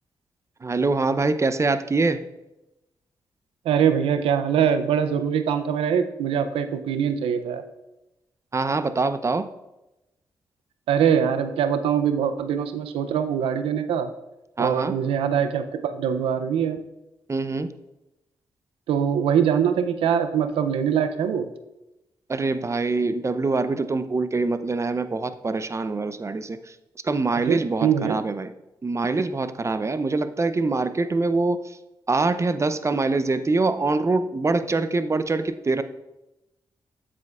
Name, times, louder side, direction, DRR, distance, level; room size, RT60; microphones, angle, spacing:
voice 1, 0.6-2.2 8.5-9.5 14.6-15.0 17.3-17.7 22.3-26.6 27.0-28.5 28.8-31.6 32.1-35.8, right 3 dB, 30° right, 12 dB, 0.5 m, -24 dB
voice 2, 3.7-7.6 10.9-14.1 14.6-16.8 18.9-21.5 27.5-28.2, right 8 dB, 90° right, 10 dB, 0.5 m, -23 dB
7.8 x 7.5 x 2.4 m, 0.96 s
supercardioid pair, 45°, 9 cm